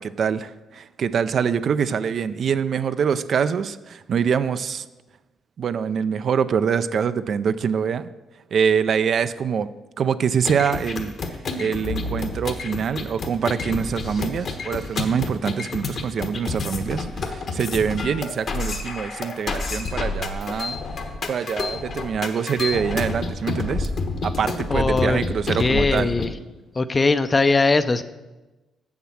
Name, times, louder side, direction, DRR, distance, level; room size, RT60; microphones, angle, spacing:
voice 1, 0.0-4.9 5.6-8.1 8.5-9.7 10.0-11.1 11.6-20.8 21.3-23.9 24.2-26.1, right 7 dB, 55° right, 12 dB, 0.4 m, -24 dB
sound 1, 10.3-26.3, left 3 dB, 55° left, 1.2 m, -29 dB
voice 2, 24.7-25.2 25.6-26.3 26.7-28.0, left 3 dB, 25° left, 12 dB, 0.5 m, -20 dB
7.4 x 7.2 x 7.2 m, 1.1 s
cardioid pair, 90°, 0 cm